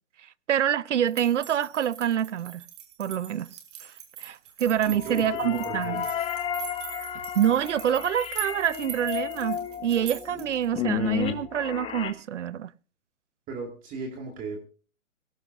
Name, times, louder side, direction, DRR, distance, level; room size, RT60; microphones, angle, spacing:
voice 1, 0.5-2.6 3.0-3.9 4.2-6.0 7.3-12.7, right 10 dB, 55° right, 0.8 m, -26 dB
sound 1, 1.1-10.6, right 10 dB, 35° right, 6.0 m, -42 dB
sound 2, 4.7-12.1, left 9 dB, 15° left, 1.3 m, -33 dB
voice 2, 4.9-6.3 13.5-14.7, right 3 dB, 20° right, 2.3 m, -37 dB
20.0 x 17.5 x 2.7 m
hypercardioid pair, 135°, 42 cm